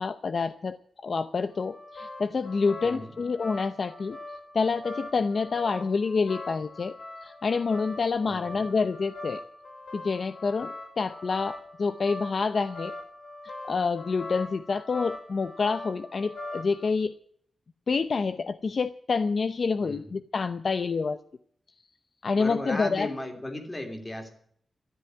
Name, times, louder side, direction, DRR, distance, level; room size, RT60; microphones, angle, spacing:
voice 1, 0.0-4.2 4.5-9.4 9.9-12.9 13.4-17.1 17.9-21.2 22.2-23.1, left 4 dB, 50° left, 11 dB, 0.7 m, -28 dB
sound 1, 1.5-16.9, left 2 dB, 85° left, 6.9 m, -42 dB
voice 2, 2.8-3.1 8.2-8.7 19.8-20.1 22.4-24.3, left 1 dB, 20° left, 5 dB, 3.2 m, -36 dB
13.5 x 11.0 x 9.5 m, 0.62 s
wide cardioid pair, 150°, 0 cm